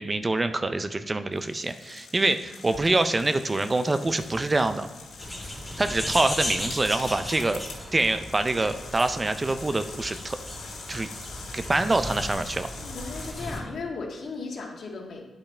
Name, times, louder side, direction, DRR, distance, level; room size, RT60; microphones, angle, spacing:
voice 1, 0.0-4.9 5.8-7.6 7.9-10.4 10.9-11.1 11.5-12.7, right 2 dB, 25° right, 10 dB, 0.4 m, -25 dB
sound 1, 1.3-13.3, left 4 dB, 90° left, 2.1 m, -44 dB
sound 2, 5.2-13.6, left 1 dB, 5° left, 2.3 m, -36 dB
voice 2, 12.8-15.2, left 4 dB, 65° left, 0 dB, 1.7 m, -36 dB
9.5 x 5.4 x 4.3 m, 1.3 s
cardioid pair, 105°, 0 cm